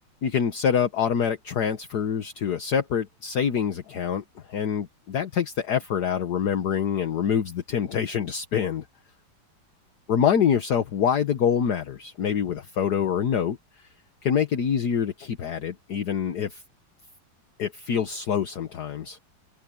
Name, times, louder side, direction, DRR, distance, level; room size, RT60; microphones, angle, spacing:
voice 1, 0.2-8.8 10.1-13.6 14.2-16.6 17.6-19.2, left 8 dB, 55° left, 1.6 m, -25 dB
open air
omnidirectional pair, 2.2 m